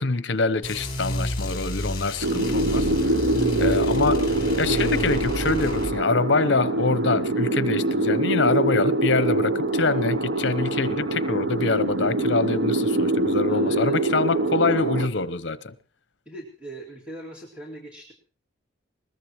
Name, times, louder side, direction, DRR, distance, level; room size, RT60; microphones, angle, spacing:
voice 1, 0.0-3.2 3.6-15.7, left 3 dB, 65° left, 0.8 m, -25 dB
sound 1, 0.6-5.9, left 1 dB, 25° left, 4.4 m, -30 dB
sound 2, 2.2-15.1, right 2 dB, 75° right, 0.8 m, -24 dB
voice 2, 13.5-13.9 16.3-18.1, right 1 dB, 5° right, 2.5 m, -40 dB
21.5 x 20.0 x 3.1 m
head